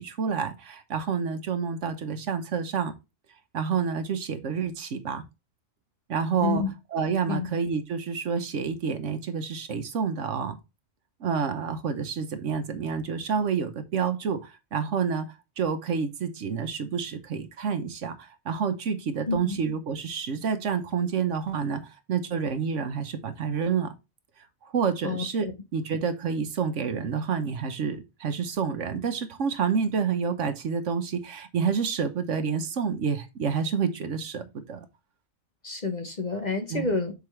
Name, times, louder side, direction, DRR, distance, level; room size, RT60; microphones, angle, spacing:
voice 1, 0.0-2.9 3.5-5.2 6.1-10.6 11.2-15.3 15.6-23.9 24.6-25.5 25.7-34.4 34.7-34.8 36.7-36.9, right 6 dB, 65° right, 1.2 m, -28 dB
voice 2, 19.3-19.6 25.0-25.2 35.6-37.1, left 4 dB, 35° left, 1.0 m, -29 dB
6.6 x 4.7 x 3.2 m
omnidirectional pair, 1.4 m